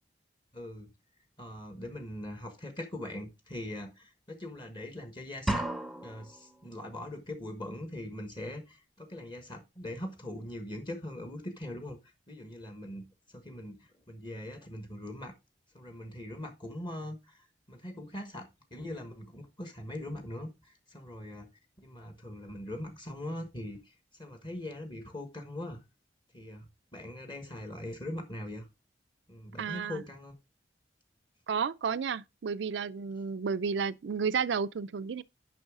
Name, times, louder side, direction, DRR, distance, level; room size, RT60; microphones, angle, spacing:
voice 1, 0.5-0.9 1.4-5.7 6.0-15.3 15.7-21.5 21.8-25.8 26.3-28.7 29.3-30.3, left 1 dB, 25° left, 1.2 m, -41 dB
sound 1, 5.5-6.5, right 1 dB, ahead, 0.7 m, -33 dB
voice 2, 29.6-30.0 31.5-35.2, right 6 dB, 75° right, 0.4 m, -32 dB
10.5 x 5.6 x 3.6 m
head